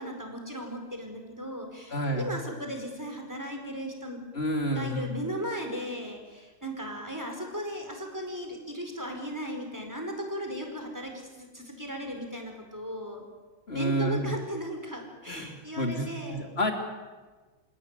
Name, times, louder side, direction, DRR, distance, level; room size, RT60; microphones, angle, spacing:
voice 1, 0.0-4.2 4.7-13.2 13.7-16.4, equal, 10° right, 3 dB, 4.7 m, -36 dB
voice 2, 1.9-2.3 4.3-5.1 13.7-14.3 15.3-16.7, equal, 30° left, 3 dB, 3.4 m, -29 dB
28.5 x 17.0 x 9.7 m, 1.3 s
omnidirectional pair, 2.1 m